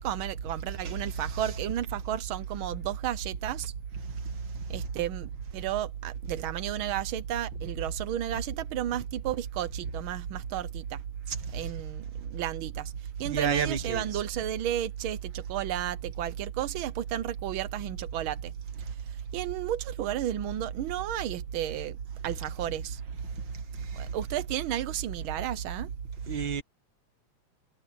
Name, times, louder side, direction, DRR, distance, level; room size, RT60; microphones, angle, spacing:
voice 1, 0.0-3.7 4.7-11.0 11.5-18.5 18.8-22.0 22.2-23.0 24.0-25.9, right 11 dB, 75° right, 1.1 m, -32 dB
voice 2, 13.3-14.2 26.3-26.6, right 6 dB, 45° right, 1.9 m, -30 dB
omnidirectional pair, 3.3 m